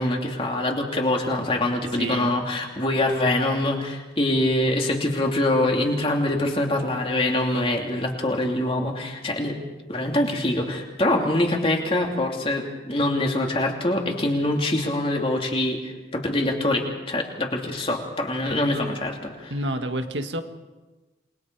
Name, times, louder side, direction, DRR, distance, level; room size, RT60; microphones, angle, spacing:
voice 1, 0.0-9.6 9.9-19.5, left 1 dB, 30° left, 1 dB, 2.9 m, -24 dB
voice 2, 2.0-2.3 19.5-20.4, right 1 dB, 85° right, 6 dB, 1.7 m, -28 dB
28.5 x 21.5 x 4.7 m, 1.2 s
head